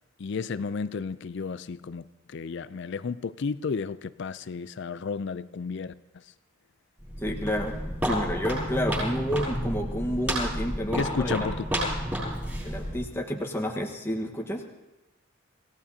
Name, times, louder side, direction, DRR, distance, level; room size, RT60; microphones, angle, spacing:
voice 1, 0.2-2.0 2.3-5.9 10.9-11.6, left 5 dB, 55° left, 0.4 m, -32 dB
Walk footsteps, 7.0-13.2, equal, 10° right, 7.7 m, -31 dB
voice 2, 7.2-7.8 8.0-11.5 12.6-14.6, equal, 10° left, 1.3 m, -30 dB
27.0 x 17.0 x 2.8 m
head